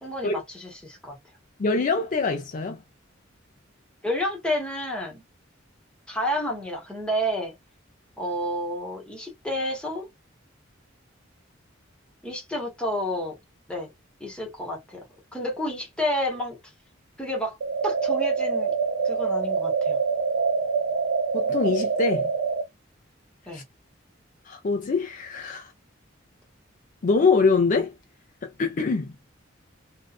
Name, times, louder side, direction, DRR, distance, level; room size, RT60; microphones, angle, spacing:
voice 1, 0.0-1.2 4.0-5.2 6.1-7.5 8.2-10.1 12.2-13.4 13.7-13.9 14.2-15.0 15.3-16.6 17.2-17.6 17.8-18.7 19.0-20.0 23.5-23.6, equal, 5° left, 0.9 m, -30 dB
voice 2, 1.6-2.8 21.3-22.3 23.5-23.6 24.5-25.7 27.0-27.9 28.4-29.1, left 4 dB, 40° left, 0.4 m, -24 dB
sound 1, 17.6-22.6, right 5 dB, 65° right, 0.4 m, -25 dB
2.5 x 2.3 x 2.3 m
head